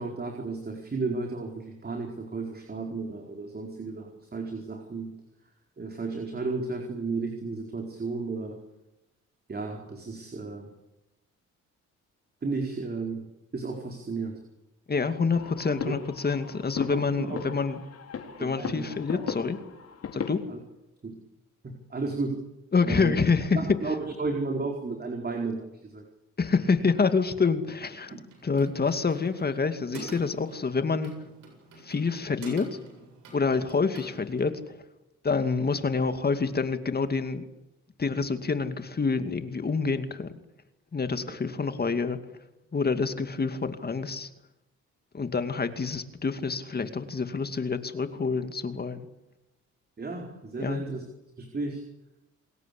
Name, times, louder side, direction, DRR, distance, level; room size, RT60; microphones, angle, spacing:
voice 1, 0.0-5.1 5.8-8.6 9.5-10.7 12.4-13.3 13.5-14.4 15.9-16.0 16.9-17.4 18.4-18.9 19.1-19.4 20.5-20.6 21.0-21.2 21.6-22.5 22.8-23.1 23.5-26.0 28.1-28.2 41.2-41.4 50.0-51.0 51.4-51.8, right 3 dB, 30° right, 2 dB, 4.5 m, -33 dB
voice 2, 14.9-17.8 18.4-19.6 20.1-20.4 22.7-23.6 26.4-28.1 28.4-31.1 31.8-32.7 33.3-34.6 35.2-37.4 38.0-40.3 40.9-42.2 42.7-44.3 45.1-49.1 50.6-50.8, left 4 dB, 30° left, 9 dB, 2.4 m, -27 dB
sound 1, 15.3-20.3, left 6 dB, 55° left, 4.3 m, -37 dB
sound 2, 28.2-34.5, right 2 dB, 85° right, 7.7 m, -47 dB
29.0 x 21.0 x 8.6 m, 0.93 s
cardioid pair, 90°, 30 cm